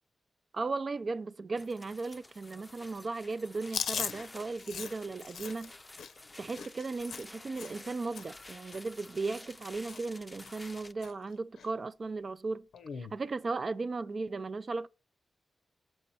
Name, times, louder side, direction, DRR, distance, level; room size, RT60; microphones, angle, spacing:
voice 1, 0.5-5.7 6.4-12.7 13.0-14.9, right 3 dB, 50° right, 0.4 m, -36 dB
sound 1, 1.5-10.9, left 2 dB, 20° left, 0.5 m, -51 dB
Chewing mastication, 3.7-7.9 8.2-8.4 8.7-9.6 9.9-10.2 10.4-11.1 11.6-11.7 12.7-13.1, left 7 dB, 85° left, 0.6 m, -40 dB
6.4 x 4.5 x 4.2 m
cardioid pair, 60°, 0 cm